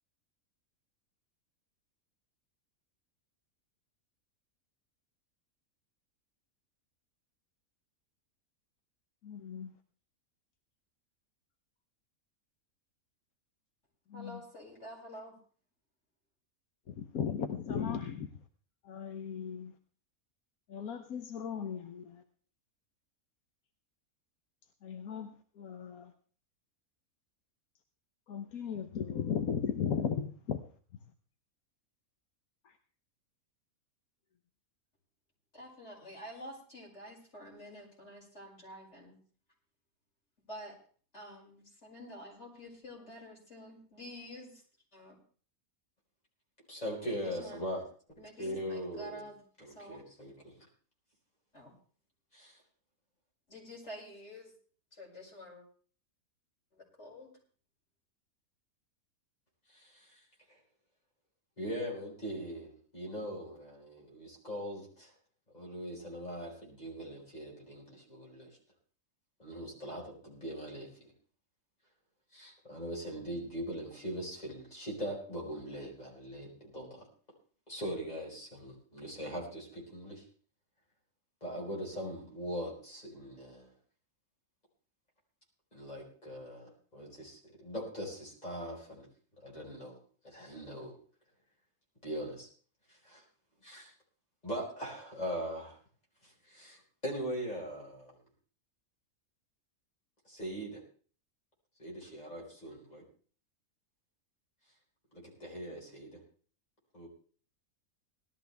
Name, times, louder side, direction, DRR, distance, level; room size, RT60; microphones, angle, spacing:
voice 1, 9.2-9.7 14.1-14.4 16.9-18.3 18.8-19.7 20.7-22.2 24.8-26.1 28.3-30.6 32.6-32.8, left 7 dB, 80° left, 6 dB, 1.4 m, -36 dB
voice 2, 14.1-15.3 35.5-39.2 40.5-40.8 41.1-44.6 44.9-45.2 47.1-47.7 48.2-50.0 51.5-51.7 53.5-54.5 54.9-55.6 56.7-57.4, equal, 50° left, -4 dB, 6.4 m, -49 dB
voice 3, 46.7-47.8 48.4-49.2 49.6-50.5 52.3-52.6 59.7-60.1 61.6-65.1 65.5-68.6 69.4-71.1 72.3-77.1 77.7-80.2 81.4-83.7 85.7-89.1 89.4-90.0 90.2-91.0 92.0-92.5 93.0-93.2 93.6-93.9 94.4-95.7 96.2-98.1 100.2-100.8 101.8-103.0 105.1-106.2 106.9-107.1, equal, 25° left, -3 dB, 5.0 m, -41 dB
18.5 x 13.0 x 3.4 m, 0.43 s
omnidirectional pair, 1.5 m